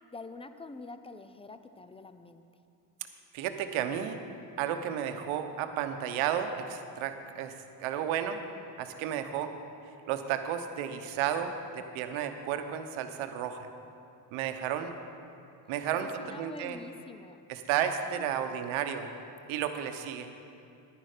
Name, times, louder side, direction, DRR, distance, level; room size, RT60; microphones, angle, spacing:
voice 1, 0.1-2.4 15.7-17.4, left 3 dB, 10° left, 10 dB, 0.5 m, -46 dB
voice 2, 3.3-4.2 4.6-8.4 8.8-9.5 10.1-13.7 14.3-14.9 15.7-16.8 17.5-19.1 19.5-20.3, right 9 dB, 75° right, 8 dB, 1.0 m, -32 dB
10.5 x 10.5 x 5.0 m, 2.6 s
supercardioid pair, 70°, 50 cm